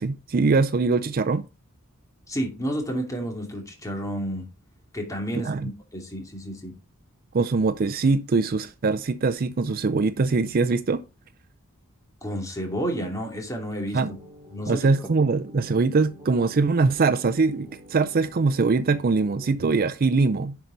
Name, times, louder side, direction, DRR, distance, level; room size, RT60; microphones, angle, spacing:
voice 1, 0.0-1.4 5.4-5.7 7.3-11.0 13.9-14.1 14.7-20.6, right 4 dB, 45° right, 0.4 m, -22 dB
voice 2, 2.3-4.5 4.9-6.7 12.2-14.2 14.5-15.1, equal, 15° left, 2.6 m, -31 dB
sound 1, 13.9-19.5, equal, 15° right, 3.0 m, -47 dB
10.5 x 5.4 x 3.9 m
head